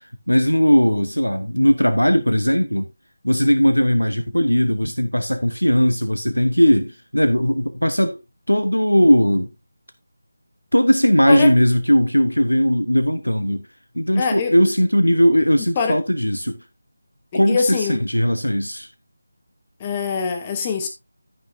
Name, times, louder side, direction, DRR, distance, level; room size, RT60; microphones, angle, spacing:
voice 1, 0.3-2.9 3.2-8.2 8.5-9.5 10.7-13.6 13.9-16.6 17.3-18.9, equal, 85° left, 1.0 m, -18 dB
voice 2, 14.1-14.5 15.8-16.0 17.3-18.0 19.8-20.9, left 5 dB, 20° left, 1.0 m, -23 dB
15.0 x 5.6 x 2.7 m
figure-of-eight pair, 160°, 0 cm